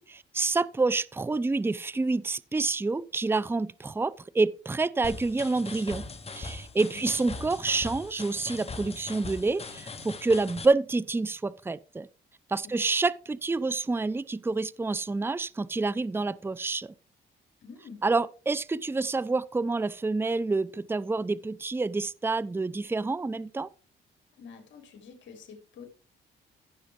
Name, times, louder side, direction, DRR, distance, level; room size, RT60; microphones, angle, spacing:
voice 1, 0.0-6.1 6.3-12.1 12.5-16.9 18.0-23.7, right 3 dB, 10° right, 0.5 m, -28 dB
sound 1, 5.0-10.7, left 3 dB, 30° left, 1.7 m, -40 dB
voice 2, 17.6-18.0 24.4-25.9, left 5 dB, 70° left, 3.6 m, -47 dB
15.0 x 6.8 x 3.6 m
cardioid pair, 90°, 20 cm